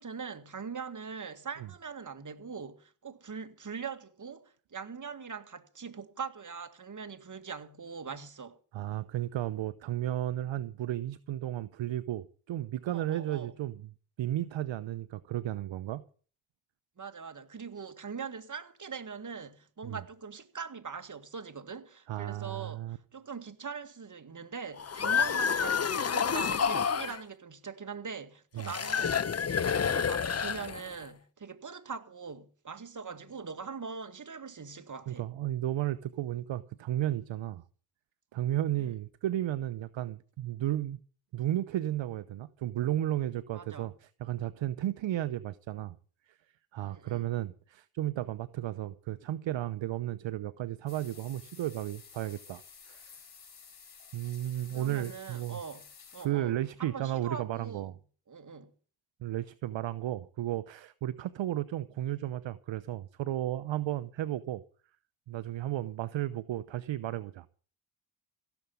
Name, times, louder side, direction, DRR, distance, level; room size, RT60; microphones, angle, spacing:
voice 1, 0.0-8.6 12.9-13.5 17.0-29.2 29.6-35.2 38.8-38.9 43.5-43.9 46.9-47.3 54.7-55.9 56.1-56.5 56.8-57.9 58.3-58.7, right 6 dB, 35° right, 2.1 m, -42 dB
voice 2, 8.7-13.9 14.2-16.0 19.8-20.0 22.1-23.0 28.5-28.7 35.1-37.6 38.3-41.0 41.3-46.0 46.3-46.4 46.7-52.6 52.9-53.1 54.1-55.6 56.2-57.9 59.2-64.6 65.3-67.5, right 13 dB, 60° right, 0.8 m, -34 dB
sound 1, 24.8-27.2 28.6-31.0, left 7 dB, 30° left, 0.9 m, -29 dB
sound 2, 50.9-56.3, left 6 dB, 50° left, 4.4 m, -53 dB
16.5 x 7.1 x 9.4 m
supercardioid pair, 55°, 50 cm